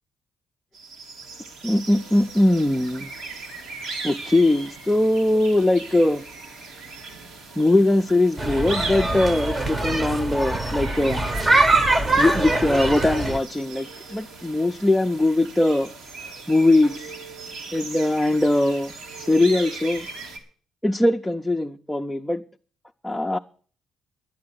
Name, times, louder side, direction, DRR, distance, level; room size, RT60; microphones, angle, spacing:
sound 1, 0.7-20.4, right 3 dB, 85° right, 2.9 m, -38 dB
voice 1, 1.6-3.1 4.0-6.2 7.6-11.2 12.2-15.9 16.5-17.1 17.7-18.9 19.2-20.1 20.8-22.4 23.0-23.4, left 1 dB, 5° left, 0.6 m, -21 dB
sound 2, 8.4-13.4, right 2 dB, 25° right, 1.1 m, -23 dB
11.5 x 8.6 x 7.7 m
cardioid pair, 100°, 0 cm